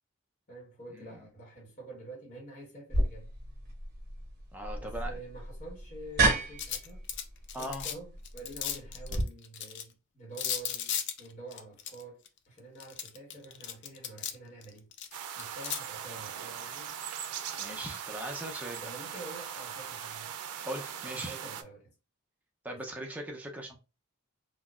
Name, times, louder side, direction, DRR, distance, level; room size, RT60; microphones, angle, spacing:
voice 1, 0.5-3.3 4.8-7.1 7.6-14.9 15.3-17.0 18.8-20.3 21.1-21.9 22.7-22.9, right 2 dB, 35° left, 1.1 m, -47 dB
sound 1, 2.9-9.2, right 2 dB, 45° right, 1.0 m, -32 dB
voice 2, 4.5-5.2 7.5-7.9 17.6-18.8 20.7-21.4 22.6-23.8, right 1 dB, 5° right, 0.5 m, -39 dB
sound 2, 6.6-7.9 8.3-9.8 10.4-12.3 12.8-14.4 14.6-15.8, left 9 dB, 50° left, 0.4 m, -36 dB
sound 3, 15.1-21.6, right 8 dB, 90° right, 0.4 m, -40 dB
3.8 x 2.2 x 2.3 m
head